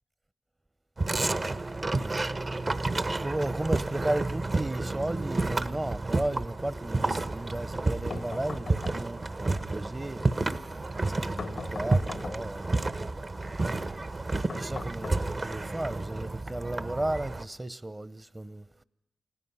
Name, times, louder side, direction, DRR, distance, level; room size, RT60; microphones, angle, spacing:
sound 1, 1.0-17.4, right 2 dB, 45° right, 1.0 m, -31 dB
voice 1, 3.1-10.8 11.1-12.9 13.6-18.7, right 1 dB, 25° right, 0.9 m, -35 dB
sound 2, 8.1-9.4 11.4-12.7 14.5-15.7, left 5 dB, 65° left, 0.6 m, -41 dB
29.5 x 17.0 x 5.7 m
cardioid pair, 50°, 0 cm